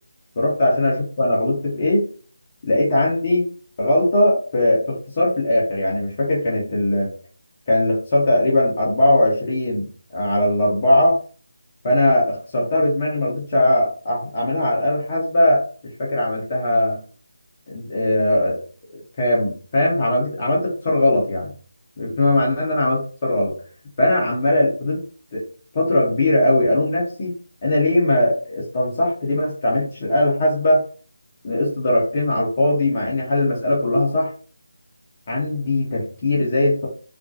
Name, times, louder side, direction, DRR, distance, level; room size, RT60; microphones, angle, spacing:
voice 1, 0.4-2.0 2.7-3.4 3.8-7.1 7.7-9.9 10.1-11.2 11.8-15.6 16.0-17.0 17.7-18.6 19.2-21.5 22.0-23.5 24.0-25.0 25.3-25.4 25.7-27.3 27.6-30.8 31.4-34.3 35.3-36.9, left 1 dB, 30° left, -4 dB, 0.7 m, -19 dB
2.4 x 2.2 x 2.5 m, 0.41 s
figure-of-eight pair, 155°, 0 cm